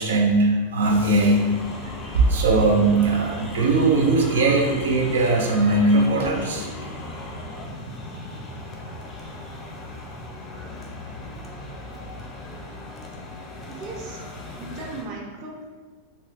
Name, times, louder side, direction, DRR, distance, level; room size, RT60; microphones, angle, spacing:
voice 1, 0.0-1.4 1.8-6.7, right 2 dB, 90° right, 1 dB, 0.5 m, -20 dB
sound 1, 0.8-15.0, left 1 dB, 20° left, 0.5 m, -37 dB
voice 2, 13.7-14.2 14.6-15.7, right 3 dB, 35° right, -1 dB, 0.6 m, -37 dB
4.1 x 2.2 x 2.4 m, 1.4 s
supercardioid pair, 150°, 0 cm